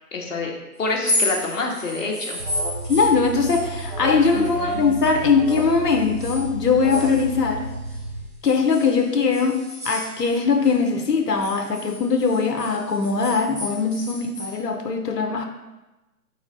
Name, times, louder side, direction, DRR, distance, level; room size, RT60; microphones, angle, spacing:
voice 1, 0.1-0.5 0.8-2.4 4.3-4.8, left 3 dB, 55° left, 0 dB, 0.9 m, -27 dB
sound 1, 0.9-5.2 5.5-8.0 8.4-10.8 11.1-14.6, left 1 dB, 25° right, 1.1 m, -32 dB
Alarm, 2.4-8.2, right 2 dB, 40° right, 0.5 m, -32 dB
voice 2, 2.9-7.7 8.4-15.5, left 5 dB, 90° left, 5 dB, 0.7 m, -21 dB
4.1 x 3.3 x 4.0 m, 1.0 s
figure-of-eight pair, 145°, 47 cm